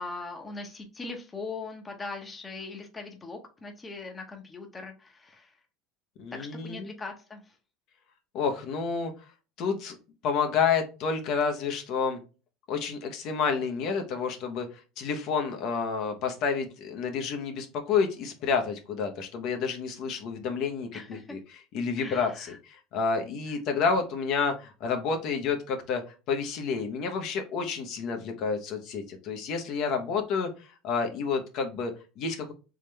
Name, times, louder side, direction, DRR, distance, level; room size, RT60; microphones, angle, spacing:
voice 1, 0.0-5.5 6.4-7.5 20.9-21.4 22.0-22.6 23.5-23.6, left 3 dB, 20° left, 4 dB, 0.9 m, -40 dB
voice 2, 6.2-6.9 8.3-9.1 9.6-10.0 10.2-12.2 12.7-14.7 15.0-21.4 21.7-32.5, left 5 dB, 55° left, 5 dB, 0.9 m, -29 dB
3.6 x 3.2 x 3.3 m, 0.32 s
supercardioid pair, 115°, 0 cm